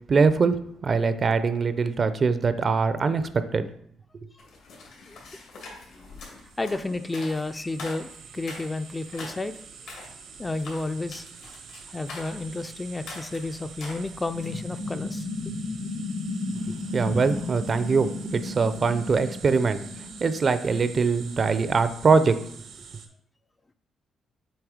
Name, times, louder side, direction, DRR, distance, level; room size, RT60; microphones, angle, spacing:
voice 1, 0.1-3.6 16.7-19.8 20.2-22.4, right 4 dB, 40° right, 12 dB, 0.4 m, -23 dB
sound 1, 4.4-14.6, left 3 dB, 85° left, 2.0 m, -44 dB
sound 2, 5.8-23.1, right 6 dB, 70° right, 0.8 m, -46 dB
voice 2, 6.6-8.1 8.3-9.5 10.4-11.2 11.9-15.3, left 2 dB, 20° left, 9 dB, 0.3 m, -31 dB
sound 3, 14.3-20.5, left 2 dB, 60° left, 0.8 m, -34 dB
7.2 x 2.7 x 4.9 m, 0.65 s
cardioid pair, 90°, 0 cm